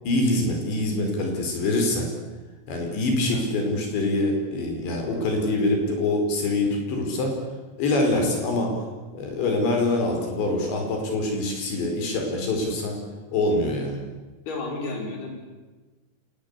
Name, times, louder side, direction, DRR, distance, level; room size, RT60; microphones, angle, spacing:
voice 1, 0.1-2.1 2.7-7.4 7.8-8.7 9.1-13.0 13.3-14.0, left 2 dB, 85° left, 2 dB, 7.1 m, -24 dB
voice 2, 14.5-15.3, left 3 dB, 65° left, 1 dB, 7.0 m, -32 dB
27.0 x 19.5 x 8.3 m, 1.2 s
omnidirectional pair, 5.0 m